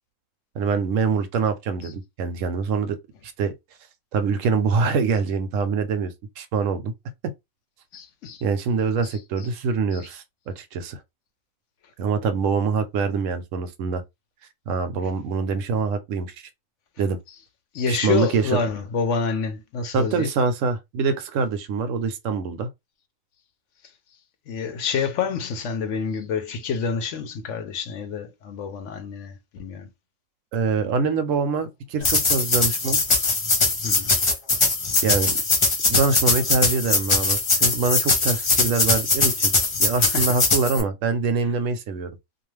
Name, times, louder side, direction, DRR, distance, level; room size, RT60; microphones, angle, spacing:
voice 1, 0.5-3.0 3.4-3.5 4.1-6.9 7.2-7.3 8.4-11.0 12.0-14.0 14.7-16.5 17.0-17.2 17.9-18.6 19.9-22.7 30.5-33.0 35.0-35.3 35.9-39.5 39.8-42.1, right 5 dB, 75° right, 0.9 m, -24 dB
voice 2, 7.9-8.4 9.9-10.0 17.7-20.3 24.5-29.9 33.8-34.1 40.0-40.3, left 5 dB, 70° left, 0.9 m, -28 dB
sound 1, 32.0-40.8, left 3 dB, 35° left, 0.5 m, -21 dB
2.4 x 2.3 x 3.1 m
omnidirectional pair, 1.4 m